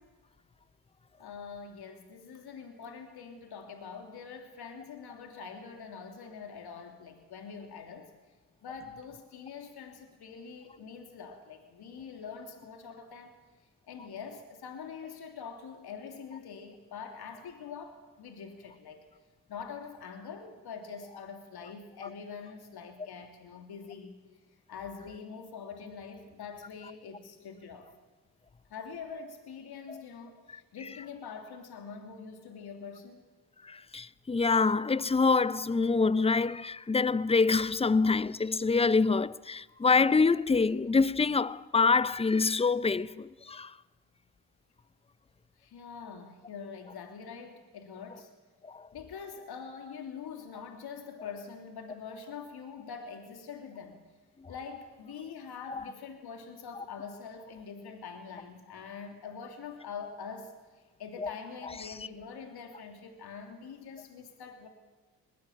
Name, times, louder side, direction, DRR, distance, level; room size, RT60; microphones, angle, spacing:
voice 1, 1.2-8.1 8.6-13.3 13.9-19.1 19.5-24.1 24.7-27.9 28.7-33.2 45.6-48.3 48.9-54.0 54.5-64.7, left 6 dB, 60° left, 3.2 m, -44 dB
voice 2, 33.7-43.7 48.7-48.8 61.2-61.3, left 4 dB, 15° left, 0.6 m, -26 dB
20.5 x 17.0 x 8.8 m
supercardioid pair, 65°, 43 cm